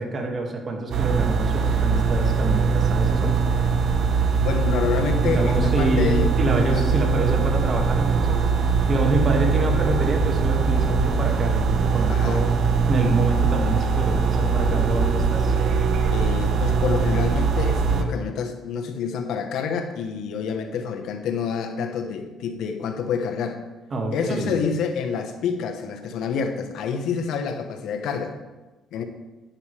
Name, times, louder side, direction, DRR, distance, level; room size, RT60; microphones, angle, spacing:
voice 1, 0.0-3.4 5.3-8.4 8.9-12.5 12.9-15.5 23.9-24.6, right 2 dB, 40° right, 1 dB, 2.1 m, -26 dB
sound 1, 0.9-18.0, right 5 dB, 60° right, 1.0 m, -21 dB
voice 2, 4.4-6.9 12.1-12.4 16.1-23.6 24.1-28.3 28.9-29.0, left 6 dB, 75° left, 6 dB, 1.2 m, -28 dB
10.5 x 10.0 x 3.4 m, 1.2 s
cardioid pair, 85°, 0 cm